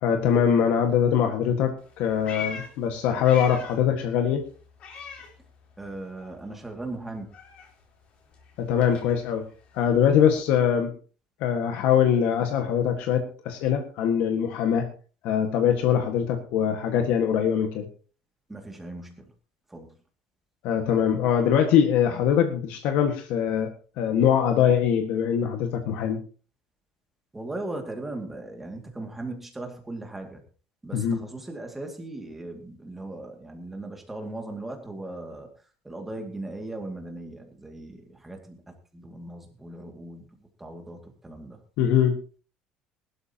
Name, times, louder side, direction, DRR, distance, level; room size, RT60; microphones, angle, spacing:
voice 1, 0.0-4.4 8.6-9.4 9.7-10.9 11.4-14.8 15.2-17.9 20.6-23.7 24.0-26.2 30.9-31.2 41.8-42.2, left 8 dB, 65° left, 4 dB, 1.7 m, -22 dB
Meow, 1.8-3.9 4.2-6.0 6.2-10.4, left 7 dB, 40° left, 3.7 m, -42 dB
voice 2, 5.8-7.3 18.5-19.3 19.7-19.9 27.3-30.4 30.8-35.5 35.8-41.6, right 2 dB, 5° right, 3 dB, 2.3 m, -38 dB
20.0 x 12.5 x 2.9 m, 0.38 s
cardioid pair, 175°, 3 cm